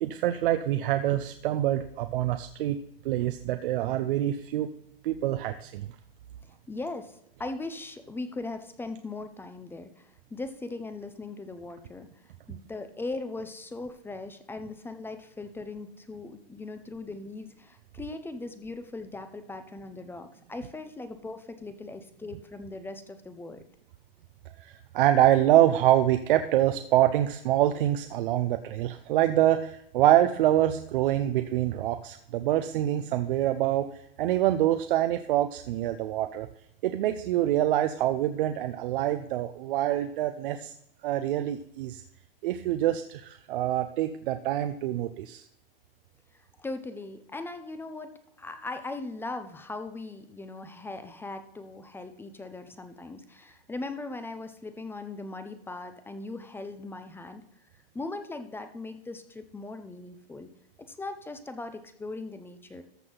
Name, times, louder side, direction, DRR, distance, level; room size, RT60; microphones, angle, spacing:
voice 1, 0.0-2.8 3.0-4.7 5.0-5.9 24.6-36.5 36.8-40.7 41.0-42.0 42.4-45.5, right 13 dB, 60° right, 9 dB, 0.6 m, -25 dB
voice 2, 6.7-12.2 12.5-23.6 46.6-57.4 57.9-60.5 60.8-62.8, left 3 dB, 5° left, 9 dB, 0.5 m, -39 dB
13.5 x 6.1 x 3.9 m, 0.76 s
hypercardioid pair, 125°, 30 cm